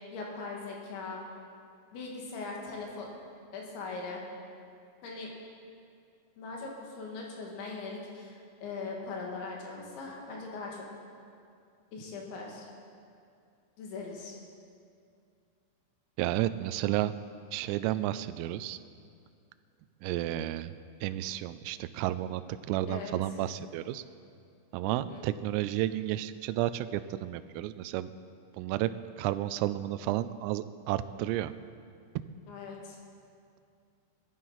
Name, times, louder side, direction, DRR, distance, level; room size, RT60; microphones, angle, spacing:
voice 1, 0.1-1.3 1.9-3.1 3.5-4.2 5.0-5.3 6.4-10.9 11.9-12.7 13.8-14.4 22.9-23.1 24.8-25.3 32.5-33.0, left 4 dB, 65° left, -1 dB, 4.2 m, -40 dB
voice 2, 16.2-17.1 17.5-18.8 20.0-20.7 21.0-22.4 22.7-24.0 24.7-28.1 28.6-28.9 29.2-31.5, right 14 dB, 85° right, 12 dB, 3.2 m, -31 dB
17.5 x 12.5 x 5.7 m, 2.4 s
omnidirectional pair, 5.9 m